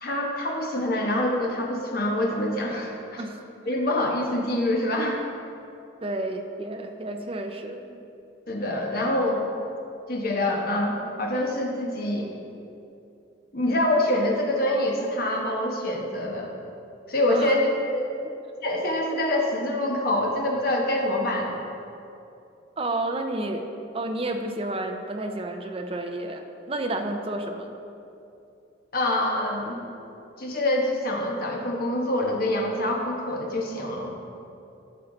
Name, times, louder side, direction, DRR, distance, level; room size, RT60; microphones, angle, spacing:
voice 1, 0.0-3.2 3.7-5.2 8.5-9.5 10.1-12.3 13.5-16.5 17.1-18.1 18.6-21.6 28.9-29.8 30.4-34.1, left 1 dB, 50° left, 0 dB, 1.2 m, -25 dB
voice 2, 6.0-8.0 17.3-17.6 22.8-23.7 23.9-27.8, right 2 dB, 30° right, 4 dB, 0.6 m, -31 dB
13.0 x 5.5 x 4.0 m, 2.7 s
head